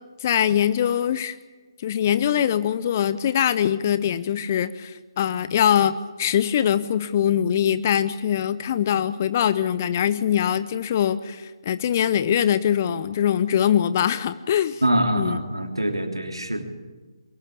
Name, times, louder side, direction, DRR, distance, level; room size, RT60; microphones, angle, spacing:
voice 1, 0.2-1.4 1.8-14.8 15.1-15.4, left 9 dB, 30° left, 14 dB, 0.8 m, -22 dB
voice 2, 14.8-16.6, right 1 dB, 85° right, 4 dB, 3.2 m, -24 dB
22.5 x 21.0 x 8.7 m, 1.3 s
figure-of-eight pair, 140°, 3 cm